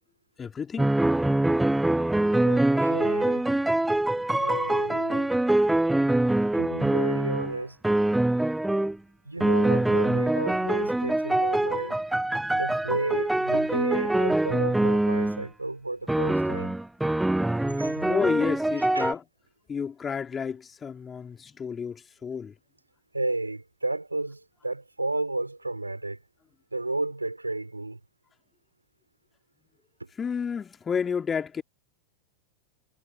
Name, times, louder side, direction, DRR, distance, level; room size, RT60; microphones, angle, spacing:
voice 1, 0.4-0.9 18.1-19.2 19.7-22.5 30.2-31.6, left 6 dB, 20° left, 3.4 m, -30 dB
sound 1, 0.8-7.6 7.8-9.0 9.4-15.5 16.1-19.1, right 1 dB, 5° right, 0.7 m, -24 dB
voice 2, 2.4-3.5 4.4-5.3 6.5-7.8 9.2-12.0 12.5-16.7 17.6-18.1 18.9-19.1 23.1-26.2 26.7-28.0 30.0-30.1, right 2 dB, 85° right, 6.1 m, -32 dB
figure-of-eight pair, 90°, 0 cm